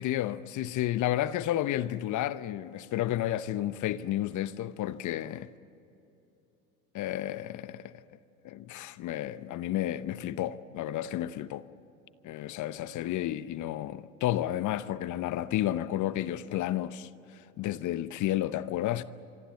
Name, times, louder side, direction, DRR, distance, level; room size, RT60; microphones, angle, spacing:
voice 1, 0.0-5.5 6.9-8.0 8.4-11.6 12.2-19.0, left 13 dB, 45° left, 0.9 m, -31 dB
26.0 x 24.0 x 8.5 m
hypercardioid pair, 85°, 42 cm